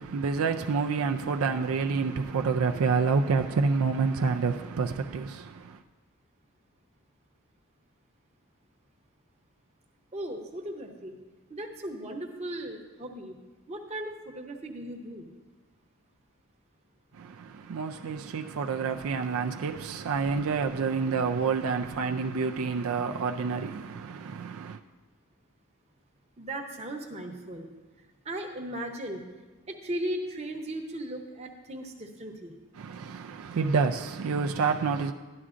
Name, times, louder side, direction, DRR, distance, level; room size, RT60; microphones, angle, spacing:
voice 1, 0.0-5.8 17.1-24.8 32.8-35.1, right 5 dB, 75° right, 0.4 m, -28 dB
voice 2, 10.1-11.2 11.5-13.4 13.7-15.3 26.4-27.7 28.0-29.2 29.7-32.6, right 1 dB, 30° right, 0.8 m, -37 dB
12.5 x 11.0 x 2.5 m
head